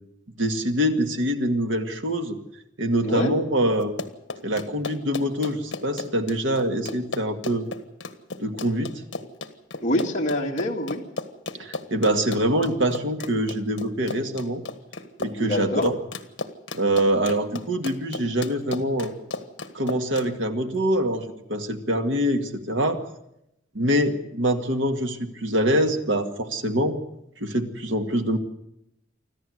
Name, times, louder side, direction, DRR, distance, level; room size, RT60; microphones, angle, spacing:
voice 1, 0.4-2.4 2.8-3.9 4.4-7.7 8.4-8.9 11.6-14.6 15.2-15.9 16.7-19.1 19.7-23.0 23.7-27.0 27.4-28.4, equal, 80° right, 6 dB, 2.0 m, -24 dB
voice 2, 3.0-3.3 9.8-11.0 15.4-15.9, left 1 dB, 35° left, -1 dB, 2.1 m, -25 dB
Run, 3.8-20.3, left 3 dB, 65° left, 1.5 m, -34 dB
25.5 x 14.5 x 7.9 m, 0.81 s
head